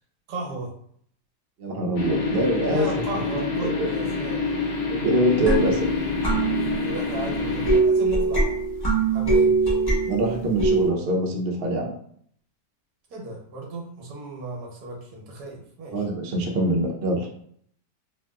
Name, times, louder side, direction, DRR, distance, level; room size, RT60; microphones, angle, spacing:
voice 1, 0.3-0.7 2.6-4.5 6.8-8.6 9.1-9.5 13.1-16.0, right 2 dB, 70° right, -2 dB, 1.3 m, -34 dB
voice 2, 1.6-2.9 3.6-3.9 4.9-5.9 10.0-11.9 15.9-17.3, right 1 dB, 85° right, 0 dB, 0.5 m, -24 dB
sound 1, 2.0-7.8, left 4 dB, 80° left, 1.2 m, -27 dB
sound 2, 5.5-10.9, right 3 dB, 15° left, 1.0 m, -23 dB
2.8 x 2.8 x 2.2 m, 0.64 s
omnidirectional pair, 1.8 m